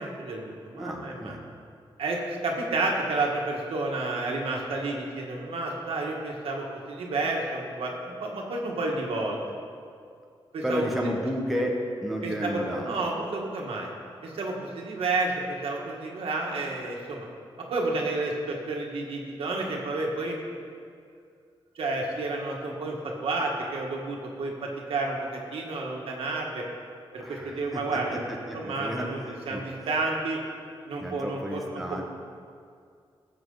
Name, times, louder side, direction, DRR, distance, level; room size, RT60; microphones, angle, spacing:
voice 1, 0.0-1.4 2.0-9.4 10.5-10.9 12.2-13.9 14.2-17.3 17.6-20.5 21.8-25.2 25.5-26.6 27.1-28.2 28.5-29.2 29.5-30.4 30.9-31.8, right 2 dB, 80° right, -1 dB, 1.9 m, -30 dB
voice 2, 0.8-1.4 10.6-12.9 27.2-27.8 28.1-29.1 29.5-29.6 31.0-32.0, equal, ahead, -1 dB, 1.2 m, -31 dB
18.0 x 7.8 x 4.0 m, 2.3 s
wide cardioid pair, 175°, 10 cm